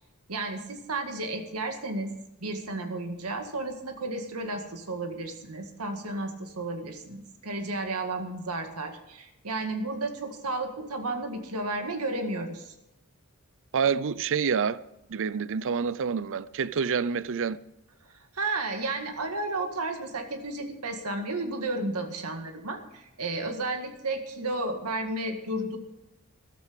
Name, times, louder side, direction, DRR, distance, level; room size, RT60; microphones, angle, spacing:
voice 1, 0.3-2.1 2.4-12.7 18.0-25.8, right 2 dB, 80° right, 1.9 m, -33 dB
voice 2, 13.7-14.8 15.1-17.6, right 6 dB, 60° right, 0.5 m, -27 dB
14.0 x 13.0 x 5.2 m
head